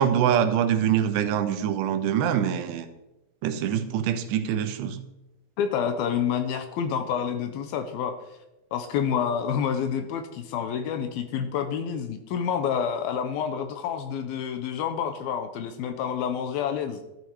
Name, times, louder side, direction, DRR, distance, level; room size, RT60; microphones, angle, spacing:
voice 1, 0.0-2.9 3.4-5.0, right 9 dB, 85° right, 8 dB, 3.2 m, -24 dB
voice 2, 5.6-8.2 8.7-17.0, left 8 dB, 75° left, 8 dB, 2.5 m, -28 dB
12.5 x 11.5 x 4.7 m, 0.95 s
omnidirectional pair, 4.8 m